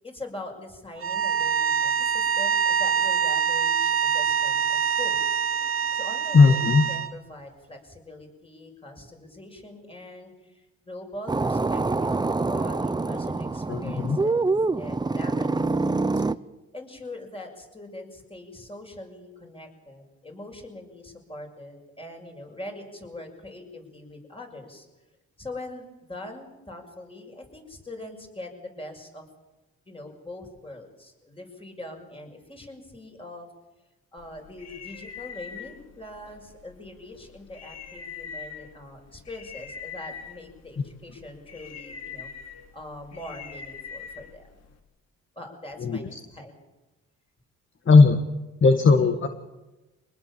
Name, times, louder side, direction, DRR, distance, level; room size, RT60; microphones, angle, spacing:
voice 1, 0.0-5.2 5.9-16.2 16.7-24.9 25.4-29.3 29.9-33.5 34.1-42.3 42.7-44.6 45.3-46.6 48.9-49.2, left 1 dB, 20° left, 3 dB, 6.8 m, -42 dB
sound 1, 1.0-7.1, right 7 dB, 45° right, 1.3 m, -25 dB
voice 2, 6.3-6.8 13.7-14.2 45.8-46.1 47.8-48.2 48.6-49.3, left 4 dB, 40° left, 7 dB, 1.8 m, -17 dB
sound 2, 11.3-16.4, right 3 dB, 15° right, 0.7 m, -25 dB
sound 3, 34.2-44.8, left 6 dB, 55° left, 3.1 m, -43 dB
25.0 x 20.0 x 7.4 m, 1.1 s
cardioid pair, 90°, 30 cm